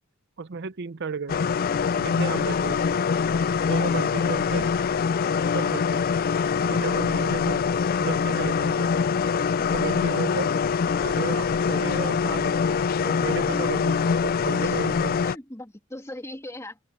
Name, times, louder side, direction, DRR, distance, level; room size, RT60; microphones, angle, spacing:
voice 1, 0.4-1.4 1.9-2.8 3.7-4.7 5.5-6.0 6.6-7.6 8.0-8.9 9.7-10.5 11.0-15.1, right 5 dB, 55° right, 0.6 m, -33 dB
sound 1, 1.3-15.3, left 6 dB, 45° left, 0.3 m, -24 dB
voice 2, 15.2-16.8, left 1 dB, 15° left, 2.1 m, -39 dB
head